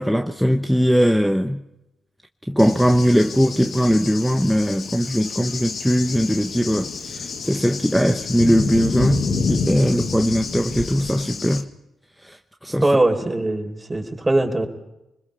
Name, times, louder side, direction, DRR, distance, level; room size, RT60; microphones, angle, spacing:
voice 1, 0.0-1.6 2.5-11.7 12.2-12.9, equal, ahead, 1.1 m, -20 dB
Cricket / Thunder, 2.6-11.6, left 4 dB, 60° left, 1.9 m, -28 dB
voice 2, 12.8-14.7, right 2 dB, 20° right, 4.4 m, -20 dB
25.5 x 21.0 x 5.7 m
supercardioid pair, 50°, 0 cm